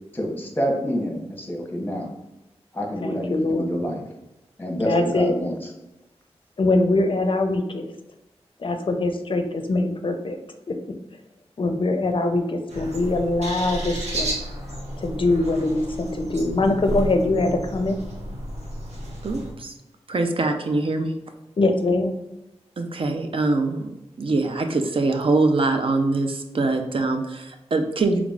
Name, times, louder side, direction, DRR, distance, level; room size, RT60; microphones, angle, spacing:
voice 1, 0.1-2.1 2.7-4.0 4.6-5.5, equal, 20° left, 0 dB, 0.8 m, -27 dB
voice 2, 3.0-3.8 4.8-5.4 6.6-7.9 8.6-10.4 10.7-10.8 11.6-14.4 15.0-18.0 21.6-22.1, left 2 dB, 50° left, 6 dB, 0.5 m, -23 dB
sound 1, 12.7-19.5, right 1 dB, 80° right, 1.0 m, -32 dB
voice 3, 19.2-19.7 20.1-21.1 22.8-23.9 24.2-28.2, right 3 dB, 55° right, 5 dB, 0.5 m, -23 dB
3.9 x 3.4 x 2.3 m, 0.94 s
wide cardioid pair, 95°, 11 cm